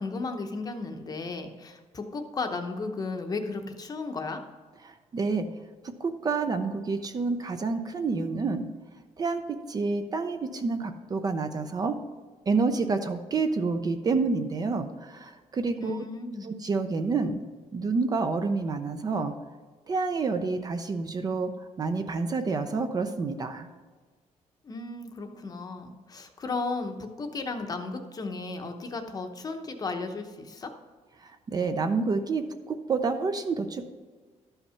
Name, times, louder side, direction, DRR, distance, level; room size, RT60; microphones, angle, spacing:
voice 1, 0.0-4.4 15.8-16.5 24.6-30.7, left 3 dB, 30° left, 5 dB, 0.8 m, -34 dB
voice 2, 4.8-5.5 5.8-8.7 9.2-12.0 12.5-16.0 16.4-17.4 17.7-19.4 19.9-21.5 21.8-23.7 31.2-33.9, right 4 dB, 30° right, 8 dB, 0.5 m, -28 dB
12.0 x 5.6 x 5.6 m, 1.4 s
cardioid pair, 150°, 13 cm